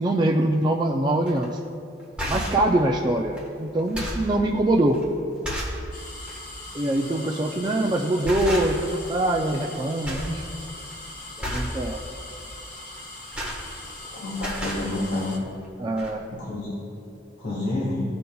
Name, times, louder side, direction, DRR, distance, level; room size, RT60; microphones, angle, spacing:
voice 1, 0.0-1.5 2.3-5.0 6.7-10.4 11.4-12.0 15.8-16.3, right 1 dB, 20° right, 1 dB, 0.3 m, -23 dB
sound 1, 1.3-1.4 2.0-2.7 3.3-3.5 3.8-4.3 4.9-5.0 5.4-5.8 6.2-6.4 7.6-7.8 8.2-9.0 9.3-9.8 10.0-10.4 10.7-10.9 11.4-11.8 13.0-14.1 14.3-14.9 15.6-15.7 16.0-16.1, equal, 5° right, 1.3 m, -31 dB
sound 2, 5.9-15.4, left 2 dB, 40° left, 1.2 m, -40 dB
voice 2, 14.1-15.3 16.3-16.7 17.4-18.0, left 2 dB, 70° left, -7 dB, 1.7 m, -29 dB
15.0 x 5.2 x 2.3 m, 2.5 s
head